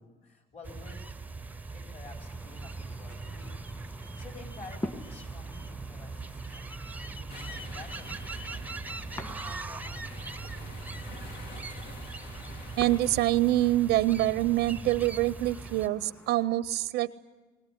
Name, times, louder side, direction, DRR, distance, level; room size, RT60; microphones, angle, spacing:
voice 1, 0.0-11.1, left 3 dB, 40° left, 2 dB, 4.6 m, -52 dB
sound 1, 0.6-15.9, right 3 dB, 10° right, 0.7 m, -40 dB
sound 2, 2.1-16.5, left 1 dB, 20° left, 1.8 m, -47 dB
sound 3, 7.3-13.2, left 2 dB, 75° left, 2.8 m, -47 dB
voice 2, 12.8-17.1, right 15 dB, 85° right, 15 dB, 0.7 m, -25 dB
22.0 x 18.5 x 10.0 m, 1.2 s
cardioid pair, 110°, 17 cm